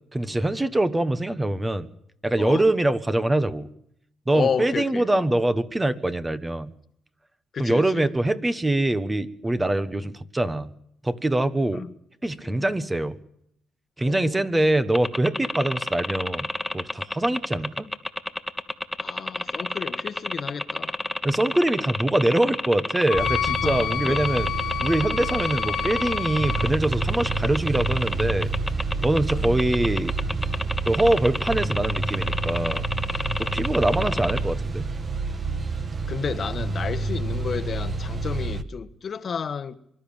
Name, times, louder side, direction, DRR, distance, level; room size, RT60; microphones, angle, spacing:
voice 1, 0.1-1.9 2.2-3.7 4.3-6.7 7.6-10.7 11.0-11.8 12.2-13.2 14.0-16.5 16.7-17.9 21.2-24.5 24.8-28.5 29.0-30.1 30.8-32.8 33.4-34.9, right 1 dB, 15° right, 1.3 m, -24 dB
voice 2, 4.3-5.3 7.5-8.1 11.7-11.9 12.4-12.7 14.0-14.5 19.0-20.9 23.2-24.2 29.3-29.5 33.8-34.3 36.1-39.7, left 6 dB, 50° left, 1.4 m, -32 dB
sound 1, 14.9-34.4, left 1 dB, 5° left, 1.8 m, -29 dB
Wind instrument woodwind instrument, 23.1-26.7, left 11 dB, 80° left, 1.0 m, -29 dB
sound 2, 23.1-38.6, right 3 dB, 35° right, 1.6 m, -29 dB
24.5 x 12.5 x 8.8 m
cardioid pair, 90°, 0 cm